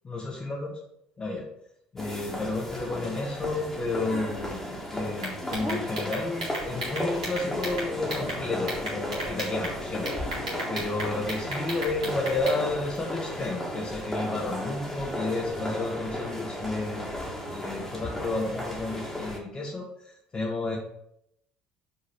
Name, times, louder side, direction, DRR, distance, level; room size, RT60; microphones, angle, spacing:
voice 1, 0.0-0.7 1.2-1.4 1.9-4.6 4.9-10.1 10.7-17.1 17.5-20.8, left 2 dB, 30° left, -3 dB, 1.6 m, -31 dB
sound 1, 2.0-19.4, equal, 10° left, 2.1 m, -34 dB
sound 2, 5.2-8.4 8.7-9.7 10.1-12.6, right 1 dB, 80° right, 2.2 m, -34 dB
5.8 x 4.8 x 5.9 m, 0.77 s
figure-of-eight pair, 60°, 4 cm